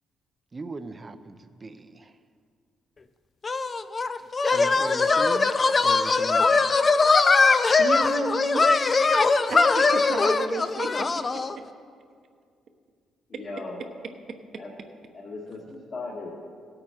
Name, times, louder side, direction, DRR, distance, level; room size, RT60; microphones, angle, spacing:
voice 1, 0.5-1.4 1.6-2.1 4.5-6.6, right 3 dB, 30° right, 10 dB, 0.6 m, -38 dB
sound 1, 3.4-11.6, left 4 dB, 35° left, 0.5 m, -21 dB
voice 2, 7.8-9.1 9.4-11.6, right 5 dB, 60° right, 6 dB, 1.1 m, -34 dB
voice 3, 13.3-13.8 14.6-14.7 15.1-16.3, left 3 dB, 50° left, -5 dB, 1.9 m, -37 dB
16.5 x 8.5 x 4.5 m, 2.1 s
cardioid pair, 90°, 0 cm